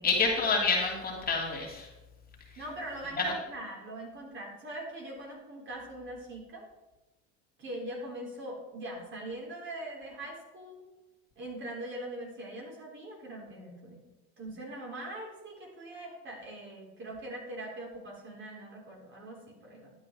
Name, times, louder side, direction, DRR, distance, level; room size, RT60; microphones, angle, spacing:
voice 1, 0.0-1.9 3.2-3.3, left 4 dB, 30° left, -2 dB, 2.8 m, -28 dB
voice 2, 2.6-6.6 7.6-10.8 11.4-14.1 14.4-19.9, right 1 dB, 35° right, -1 dB, 3.9 m, -42 dB
11.5 x 8.6 x 4.7 m, 1.0 s
supercardioid pair, 115°, 32 cm